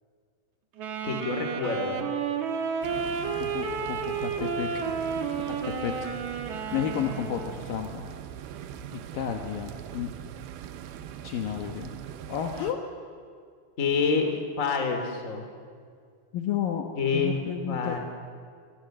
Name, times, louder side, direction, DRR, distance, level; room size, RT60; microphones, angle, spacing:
Wind instrument woodwind instrument, 0.8-7.7, right 6 dB, 65° right, 1.9 m, -31 dB
voice 1, 1.0-2.1 13.8-15.5 17.0-17.4 17.7-18.0, left 5 dB, 25° left, 5 dB, 1.7 m, -27 dB
sound 1, 2.8-12.7, right 10 dB, 80° right, 2.2 m, -41 dB
voice 2, 3.4-4.7 5.5-5.9 6.7-8.1 8.9-10.1 11.2-11.9 12.3-12.8 16.3-16.9 17.1-18.0, left 9 dB, 85° left, 4 dB, 1.9 m, -32 dB
26.0 x 26.0 x 7.8 m, 2.2 s
omnidirectional pair, 6.0 m